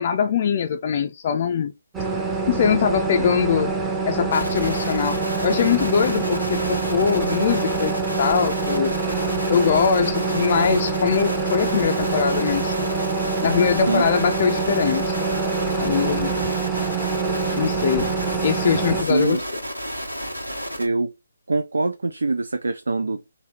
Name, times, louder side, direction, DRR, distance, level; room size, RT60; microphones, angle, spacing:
voice 1, 0.0-1.7 2.5-3.7 4.1-5.2 5.4-8.9 9.5-12.7 13.4-15.2 15.7-16.3 17.6-18.1 18.4-19.4, left 7 dB, 35° left, 0.4 m, -22 dB
sound 1, 1.9-19.0, right 4 dB, 10° right, 0.8 m, -25 dB
sound 2, 4.3-20.9, equal, 90° right, 1.5 m, -32 dB
voice 2, 13.7-14.1 18.2-18.5 19.0-19.4 20.8-21.1 21.5-23.3, right 3 dB, 65° right, 0.4 m, -24 dB
4.2 x 2.7 x 3.7 m
figure-of-eight pair, 140°, 0 cm